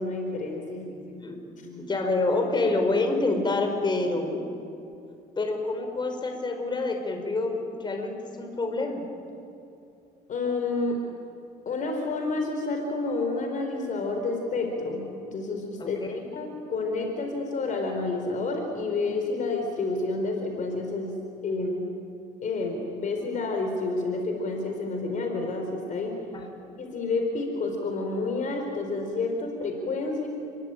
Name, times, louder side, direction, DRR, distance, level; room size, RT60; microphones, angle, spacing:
voice 1, 0.0-1.1 1.6-1.7 10.3-11.0 11.7-16.0 16.3-21.2 21.4-21.9 22.4-26.2 26.8-30.3, left 3 dB, 50° left, 3 dB, 4.2 m, -29 dB
voice 2, 1.1-4.4 5.4-7.5 7.8-9.0 15.8-16.2 26.6-26.7, left 2 dB, 25° left, 4 dB, 5.1 m, -27 dB
29.5 x 21.5 x 9.0 m, 2.7 s
cardioid pair, 110°, 17 cm